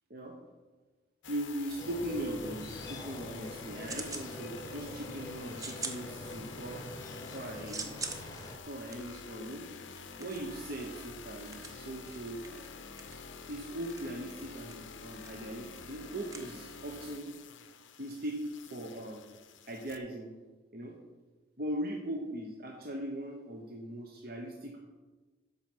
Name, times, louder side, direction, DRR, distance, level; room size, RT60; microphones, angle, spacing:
sound 1, 1.2-20.0, left 5 dB, 85° left, 0.7 m, -48 dB
voice 1, 1.3-6.9 7.3-8.0 8.7-9.6 10.2-12.6 13.5-17.3 18.0-19.2 19.7-20.3 20.7-21.0 21.6-24.8, right 1 dB, 50° right, 1 dB, 0.8 m, -39 dB
sound 2, 1.8-8.6, left 1 dB, 20° left, 0.8 m, -45 dB
sound 3, 3.8-4.3 4.7-5.1 5.5-6.7 7.1-17.1, right 4 dB, 20° right, 0.6 m, -45 dB
7.8 x 5.4 x 6.1 m, 1.3 s
head